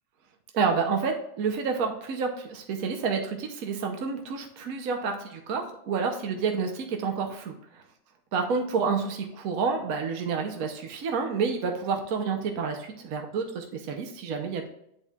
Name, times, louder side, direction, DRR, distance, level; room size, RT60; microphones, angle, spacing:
voice 1, 0.5-7.5 8.3-14.7, right 5 dB, 60° right, 3 dB, 1.2 m, -29 dB
10.0 x 4.4 x 2.4 m, 0.77 s
omnidirectional pair, 1.9 m